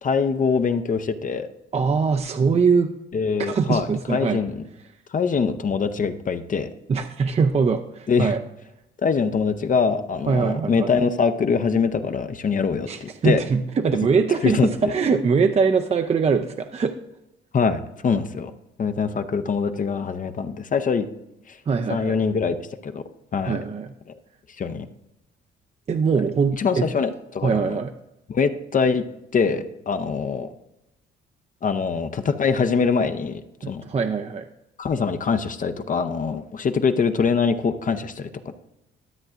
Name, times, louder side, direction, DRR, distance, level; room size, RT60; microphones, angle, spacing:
voice 1, 0.0-1.5 3.1-4.6 5.1-6.7 8.1-8.3 9.0-13.4 14.4-14.7 17.5-18.5 18.8-21.1 21.5-21.6 21.9-22.5 22.8-23.0 23.3-23.6 24.6-24.9 26.6-27.7 28.3-29.0 29.3-30.5 31.6-33.4 33.7-33.8 34.8-38.3, left 5 dB, 40° left, 9 dB, 0.6 m, -23 dB
voice 2, 1.7-2.9 3.4-4.4 6.9-8.4 10.3-10.9 12.9-16.9 21.7-22.2 23.4-23.9 25.9-26.9 27.4-27.9 33.6-34.4, right 5 dB, 30° right, 6 dB, 0.5 m, -22 dB
13.0 x 7.6 x 2.5 m, 0.90 s
cardioid pair, 90°, 20 cm